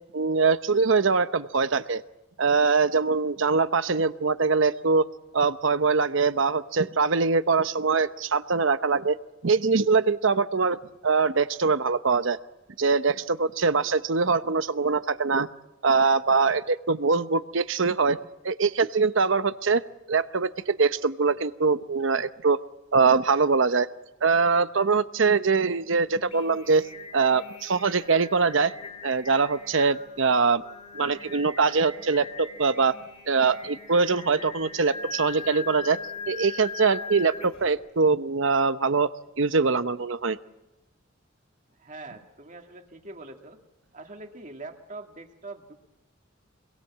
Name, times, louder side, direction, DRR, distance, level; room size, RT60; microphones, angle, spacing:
voice 1, 0.1-2.0 2.4-5.0 5.3-9.2 9.4-10.8 11.0-12.4 12.8-15.5 15.8-18.2 18.4-19.8 20.1-22.6 22.9-23.9 24.2-26.8 27.1-28.7 29.0-30.6 30.9-32.9 33.3-36.0 36.3-39.1 39.4-40.4, right 4 dB, 65° right, 13 dB, 0.8 m, -23 dB
Singing, 26.1-37.8, left 5 dB, 30° left, 2.8 m, -41 dB
voice 2, 41.7-43.6 43.9-45.7, right 2 dB, 40° right, 4 dB, 2.2 m, -43 dB
25.5 x 22.0 x 7.4 m, 0.97 s
head